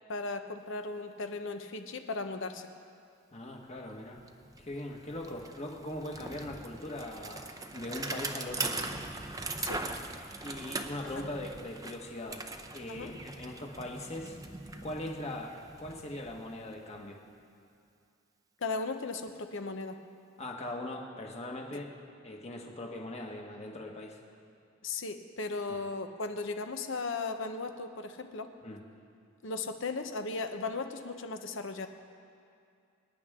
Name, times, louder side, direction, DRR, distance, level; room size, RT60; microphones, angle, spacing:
voice 1, 0.1-2.7 9.6-9.8 11.2-11.3 12.9-13.1 18.6-20.0 24.8-28.5 29.4-31.9, left 3 dB, 70° left, 7 dB, 0.9 m, -36 dB
voice 2, 3.3-4.2 4.6-8.9 10.4-12.4 12.7-14.4 14.8-17.2 20.4-21.9 22.2-24.2 28.6-28.8, left 1 dB, 35° left, 1 dB, 1.5 m, -40 dB
Bicycle, 3.8-3.9 4.1-17.1, right 3 dB, 20° right, 0.6 m, -41 dB
25.5 x 9.9 x 3.7 m, 2.4 s
head